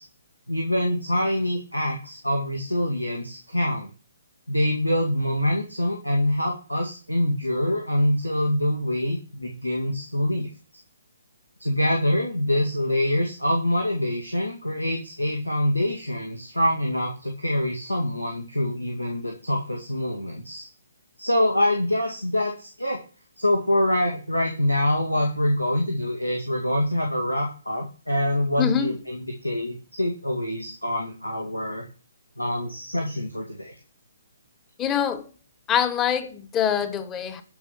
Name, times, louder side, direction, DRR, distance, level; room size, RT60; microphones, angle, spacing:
voice 1, 0.5-3.9 4.5-10.5 11.6-20.6 21.2-23.0 23.4-31.9 32.4-33.7, left 1 dB, 85° left, 2.1 m, -25 dB
voice 2, 28.6-29.0 34.8-35.3 35.7-37.4, left 8 dB, 15° left, 1.1 m, -24 dB
13.0 x 5.2 x 6.1 m
figure-of-eight pair, 135°, 0 cm